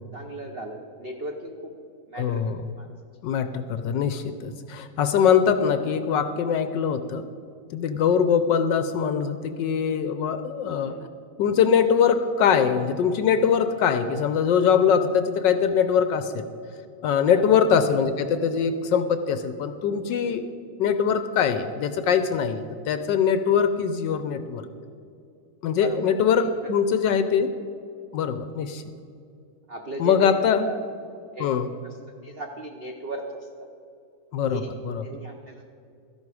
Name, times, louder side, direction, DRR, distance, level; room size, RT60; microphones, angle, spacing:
voice 1, 0.1-1.8 2.1-2.4 2.8-2.9 3.4-3.5 10.8-11.1 17.3-17.6 20.2-20.4 25.7-26.5 29.7-30.8 31.3-31.5 31.8-32.0 32.2-33.5 34.4-34.7 35.0-35.8, right 2 dB, 60° right, 2 dB, 0.6 m, -36 dB
voice 2, 2.2-2.6 3.2-7.2 7.7-10.9 11.4-16.4 17.0-20.4 20.8-24.6 25.6-27.5 28.1-28.8 30.0-30.7 31.4-31.7 34.3-35.0, left 7 dB, 75° left, 10 dB, 1.1 m, -22 dB
13.5 x 11.0 x 4.8 m, 2.6 s
omnidirectional pair, 2.3 m